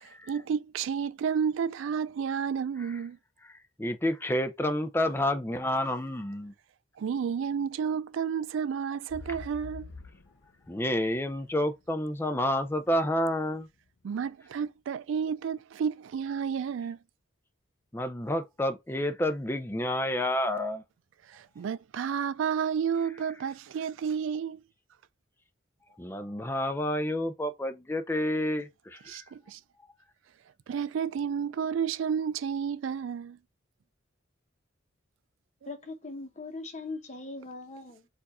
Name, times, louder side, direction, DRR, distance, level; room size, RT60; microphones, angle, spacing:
voice 1, 0.0-3.2 7.0-9.9 14.0-17.0 21.3-24.6 29.1-29.6 30.7-33.4, right 7 dB, 70° right, 0.3 m, -31 dB
voice 2, 3.8-6.5 10.7-13.7 17.9-20.8 26.0-29.0, left 1 dB, 10° left, 0.5 m, -29 dB
sound 1, 9.1-13.0 13.5-13.6, left 3 dB, 60° left, 0.5 m, -46 dB
voice 3, 35.7-38.1, left 3 dB, 35° left, 0.9 m, -40 dB
4.6 x 2.5 x 4.1 m
head